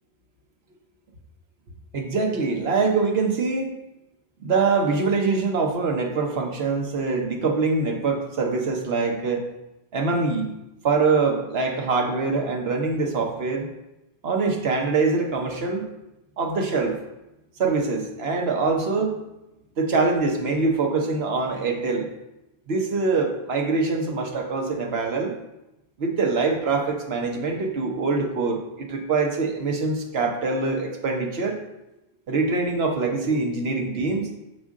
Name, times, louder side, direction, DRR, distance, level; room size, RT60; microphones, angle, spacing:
voice 1, 1.9-3.7 4.4-9.5 9.9-10.6 10.8-13.7 14.2-15.9 16.4-17.0 17.6-19.2 19.8-22.1 22.7-25.3 26.0-31.6 32.3-34.3, right 4 dB, 65° right, 2 dB, 1.2 m, -24 dB
6.7 x 5.2 x 3.7 m, 0.93 s
omnidirectional pair, 1.1 m